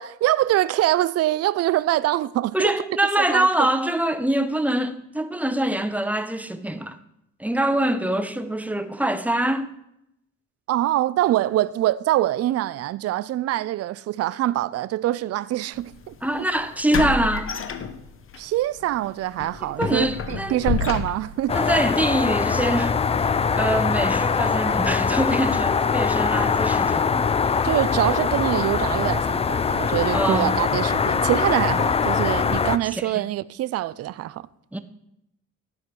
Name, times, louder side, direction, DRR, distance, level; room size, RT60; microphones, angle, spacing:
voice 1, 0.0-2.7 3.3-3.7 10.7-16.5 18.4-21.6 27.6-34.5, right 14 dB, 55° right, 0.4 m, -24 dB
voice 2, 2.5-7.0 7.4-9.7 16.2-17.5 19.7-20.8 21.5-23.0 23.5-27.0 27.5-27.6 30.1-30.5 33.0-33.1 34.7-34.8, right 1 dB, 5° right, 0.7 m, -24 dB
sound 1, 15.8-15.9 16.9-18.4 18.8-19.0 19.4-21.5, left 6 dB, 45° left, 0.9 m, -28 dB
sound 2, 21.5-32.8, left 5 dB, 20° left, 0.4 m, -22 dB
12.5 x 5.1 x 6.0 m
cardioid pair, 90°, 30 cm